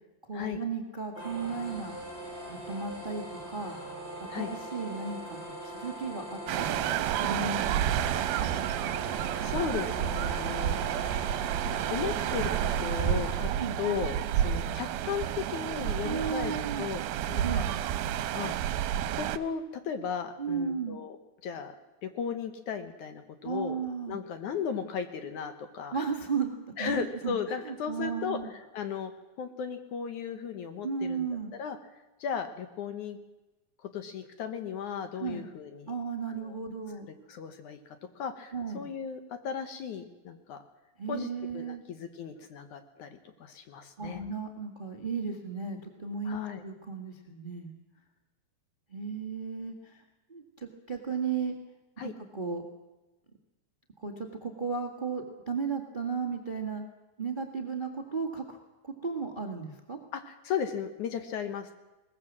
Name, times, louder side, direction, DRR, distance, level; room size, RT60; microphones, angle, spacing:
voice 1, 0.3-1.9 2.5-3.8 4.4-7.9 8.3-8.5 13.6-13.8 16.0-16.9 17.4-17.7 20.4-21.0 23.4-24.2 25.9-28.5 30.8-31.5 35.1-35.5 35.9-37.1 38.5-38.8 41.0-41.8 44.0-46.4 46.6-47.7 48.9-50.0 50.3-51.5 52.0-52.6 54.0-56.8 57.2-58.6 58.8-60.0, right 5 dB, 30° right, 4 dB, 0.9 m, -35 dB
sound 1, 1.1-13.3, right 1 dB, 15° left, 6.7 m, -41 dB
sound 2, 6.5-19.4, right 11 dB, 80° right, 2.6 m, -30 dB
voice 2, 9.0-11.1 11.7-12.5 12.8-13.5 13.8-17.0 17.3-17.6 18.3-18.6 19.1-21.2 21.4-23.8 24.1-26.0 26.8-29.1 29.4-31.3 31.6-31.8 32.2-33.2 33.9-35.9 36.4-36.6 37.3-40.6 41.1-41.3 41.5-44.2 46.3-46.6 52.0-52.1 60.1-61.7, left 7 dB, 65° left, 8 dB, 2.3 m, -36 dB
21.5 x 19.5 x 7.4 m, 1.1 s
omnidirectional pair, 4.4 m